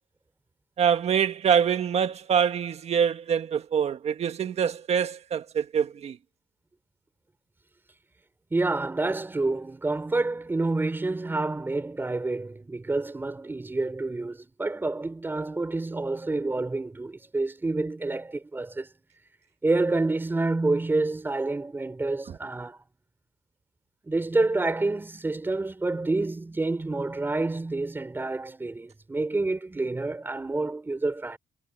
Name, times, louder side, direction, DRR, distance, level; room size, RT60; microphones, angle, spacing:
voice 1, 0.8-6.2 22.3-22.4, right 7 dB, 45° right, 1.6 m, -25 dB
voice 2, 8.5-18.9 19.6-22.8 24.1-31.4, right 2 dB, 15° right, 4.4 m, -28 dB
cardioid pair, 160°, 14 cm